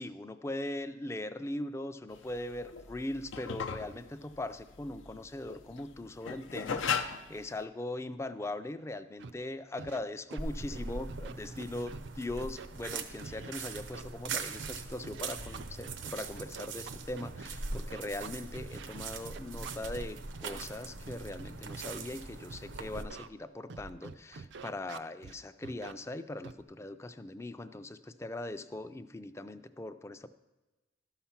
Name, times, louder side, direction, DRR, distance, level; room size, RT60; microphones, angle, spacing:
voice 1, 0.0-30.3, left 1 dB, 15° left, 11 dB, 0.4 m, -40 dB
sound 1, 2.1-7.6, left 6 dB, 85° left, 0.6 m, -37 dB
Scratching (performance technique), 9.2-9.3 9.8-10.0 10.3-10.8 11.1-12.1 12.4-14.7 15.0-20.1 20.4-20.6 21.1-22.0 22.5-22.6 22.9-23.3 23.7-25.3 25.6-25.9 26.4-26.6, right 4 dB, 65° right, 0.4 m, -45 dB
sound 2, 10.4-23.0, right 4 dB, 85° right, 0.8 m, -41 dB
12.5 x 5.8 x 5.7 m, 1.1 s
head